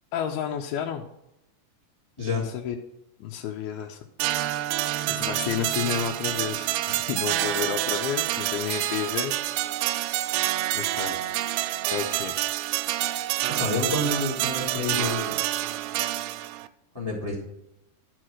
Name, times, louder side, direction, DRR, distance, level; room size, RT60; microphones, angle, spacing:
voice 1, 0.1-1.0 2.3-2.8 3.2-4.0 4.3-4.5 5.1-9.4 10.7-11.3 11.9-12.3, left 9 dB, 80° left, 1 dB, 2.5 m, -31 dB
voice 2, 2.2-2.5 13.5-15.4 16.9-17.4, left 3 dB, 10° left, -1 dB, 1.0 m, -28 dB
sound 1, 4.2-16.7, right 15 dB, 85° right, 2.6 m, -28 dB
12.5 x 4.6 x 6.2 m, 0.87 s
omnidirectional pair, 4.6 m